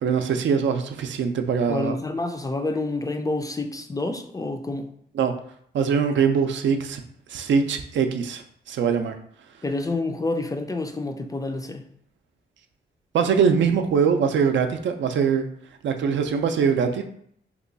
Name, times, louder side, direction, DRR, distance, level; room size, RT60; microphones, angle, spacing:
voice 1, 0.0-2.0 5.1-5.3 5.7-7.0 7.3-9.2 13.1-15.5 15.8-17.0, right 6 dB, 80° right, 6 dB, 0.4 m, -22 dB
voice 2, 1.7-4.9 9.6-11.8, left 2 dB, 20° left, 6 dB, 0.3 m, -28 dB
2.9 x 2.3 x 3.9 m, 0.65 s
cardioid pair, 80°, 19 cm